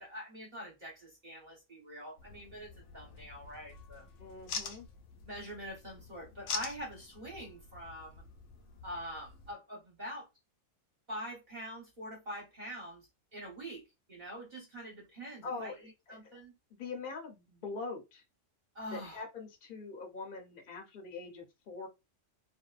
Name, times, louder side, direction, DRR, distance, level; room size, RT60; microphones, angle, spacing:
voice 1, 0.0-4.1 5.2-8.2 8.8-10.3 11.1-13.8 14.1-16.5 18.7-19.2, equal, 40° right, 1.1 m, -45 dB
sound 1, 2.2-9.5, left 5 dB, 90° left, 1.0 m, -45 dB
voice 2, 4.2-4.9 15.4-16.2 16.7-18.2 18.9-21.9, left 4 dB, 45° left, 0.8 m, -43 dB
2.6 x 2.1 x 2.4 m
omnidirectional pair, 1.4 m